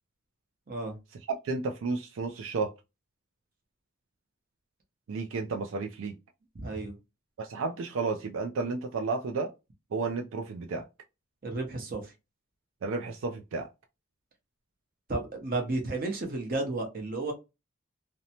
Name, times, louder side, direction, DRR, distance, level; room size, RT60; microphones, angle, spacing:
voice 1, 0.7-1.0 6.5-6.9 11.4-12.1 15.1-17.3, right 2 dB, 45° right, 0.7 m, -32 dB
voice 2, 1.4-2.7 5.1-6.2 7.4-9.5 9.9-10.8 12.8-13.7, right 4 dB, 75° right, 0.4 m, -32 dB
2.6 x 2.1 x 2.8 m
head